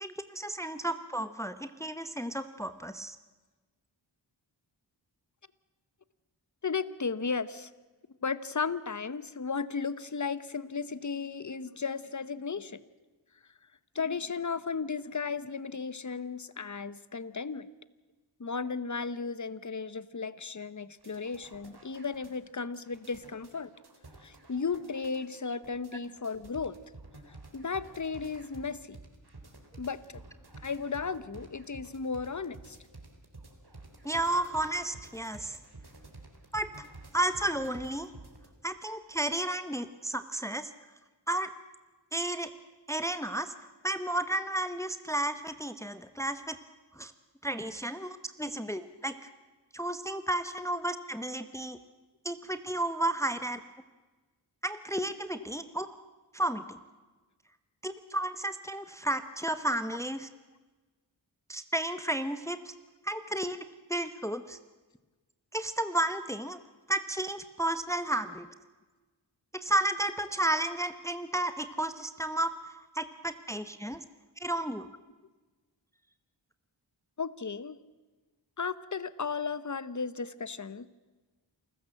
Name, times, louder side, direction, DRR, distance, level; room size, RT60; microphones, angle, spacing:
voice 1, 0.0-3.2 34.0-35.6 36.5-36.7 37.1-38.1 38.6-40.7 41.3-41.5 42.1-42.5 42.9-46.6 47.0-47.1 47.4-49.1 49.7-51.8 52.2-53.6 54.6-55.9 56.3-56.8 57.8-60.3 61.5-62.7 63.0-63.6 63.9-64.6 65.5-66.6 66.9-68.5 69.5-72.5 72.9-74.0 74.4-74.9, right 1 dB, 5° left, 10 dB, 1.1 m, -32 dB
voice 2, 6.6-7.7 8.2-12.8 13.9-17.7 18.4-23.7 24.2-26.8 27.5-29.0 29.8-30.2 30.6-32.8 77.2-77.8 78.6-80.9, left 5 dB, 40° left, 16 dB, 1.0 m, -35 dB
sound 1, 21.0-38.5, right 2 dB, 55° right, 4.0 m, -51 dB
28.0 x 15.0 x 7.8 m, 1.3 s
cardioid pair, 45°, 46 cm